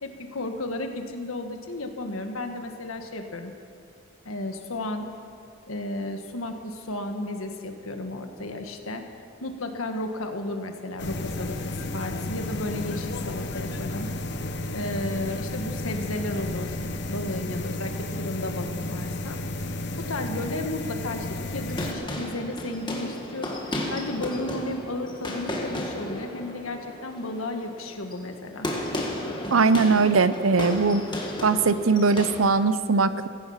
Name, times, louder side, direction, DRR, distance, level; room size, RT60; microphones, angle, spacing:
voice 1, 0.0-3.5 4.2-5.1 5.7-9.0 9.4-11.6 11.9-14.1 14.7-16.8 17.1-19.4 20.1-28.7, left 2 dB, 85° left, 5 dB, 1.6 m, -33 dB
sound 1, 11.0-21.9, left 1 dB, 55° left, 1.0 m, -32 dB
sound 2, 21.5-32.4, left 1 dB, 20° left, 1.7 m, -33 dB
voice 2, 29.5-31.0 31.4-33.3, right 4 dB, 85° right, 13 dB, 0.7 m, -20 dB
16.0 x 15.5 x 5.7 m, 2.2 s
head